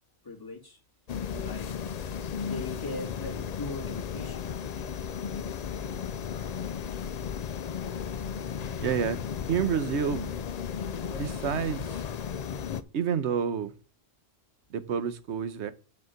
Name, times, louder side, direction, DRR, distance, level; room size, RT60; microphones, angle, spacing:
voice 1, 0.2-0.8 1.3-1.7 2.4-4.6, left 2 dB, 20° left, 1.9 m, -40 dB
sound 1, 1.1-12.8, left 7 dB, 55° left, 0.5 m, -35 dB
voice 2, 8.8-9.2 9.5-10.3 11.1-12.0 12.9-13.7 14.7-15.7, right 7 dB, 85° right, 1.1 m, -29 dB
6.8 x 4.3 x 6.4 m
omnidirectional pair, 1.1 m